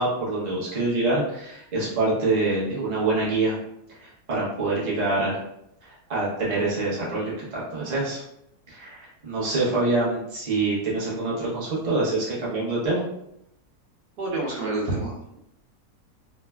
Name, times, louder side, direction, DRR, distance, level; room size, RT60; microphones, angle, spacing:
voice 1, 0.0-3.6 4.0-5.4 5.8-8.2 8.7-13.0, right 2 dB, 35° right, -6 dB, 0.8 m, -25 dB
voice 2, 14.2-15.3, right 2 dB, 85° right, -3 dB, 1.3 m, -28 dB
3.1 x 2.4 x 2.3 m, 0.79 s
omnidirectional pair, 1.7 m